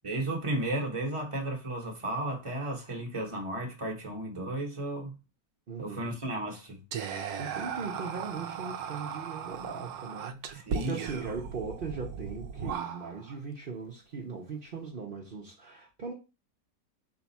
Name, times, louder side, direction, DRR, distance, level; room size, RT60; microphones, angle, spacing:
voice 1, 0.0-5.2 5.8-6.8 10.5-11.0, right 1 dB, 20° right, 0.9 m, -34 dB
voice 2, 5.7-6.1 7.4-16.1, right 5 dB, 50° right, 0.6 m, -39 dB
Whispering, 6.9-13.4, right 6 dB, 70° right, 0.9 m, -37 dB
5.1 x 2.4 x 4.1 m
omnidirectional pair, 1.9 m